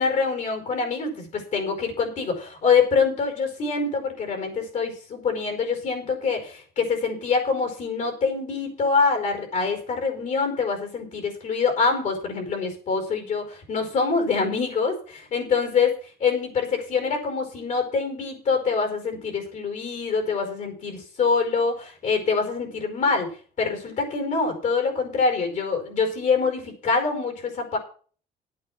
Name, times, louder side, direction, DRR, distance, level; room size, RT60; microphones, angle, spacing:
voice 1, 0.0-23.3 23.6-27.8, left 5 dB, 45° left, 5 dB, 4.9 m, -25 dB
12.0 x 8.6 x 6.1 m, 0.41 s
cardioid pair, 155°, 18 cm